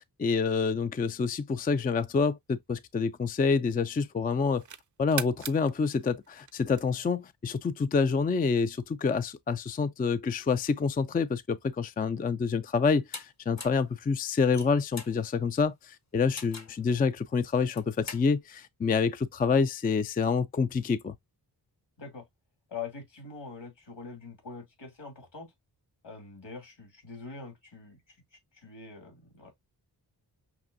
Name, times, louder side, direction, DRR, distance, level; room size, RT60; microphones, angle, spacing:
voice 1, 0.2-4.6 5.0-21.1, left 5 dB, 20° left, 0.3 m, -27 dB
sound 1, 2.1-3.8 4.3-7.2, right 8 dB, 45° right, 0.5 m, -42 dB
sound 2, 13.1-13.2 13.6-13.9 14.4-15.2 16.4-16.8 17.6-18.3, left 4 dB, 40° left, 0.8 m, -41 dB
voice 2, 22.7-25.5 26.0-28.0 28.6-29.5, left 5 dB, 70° left, 2.5 m, -43 dB
5.9 x 2.5 x 2.5 m
cardioid pair, 45°, 44 cm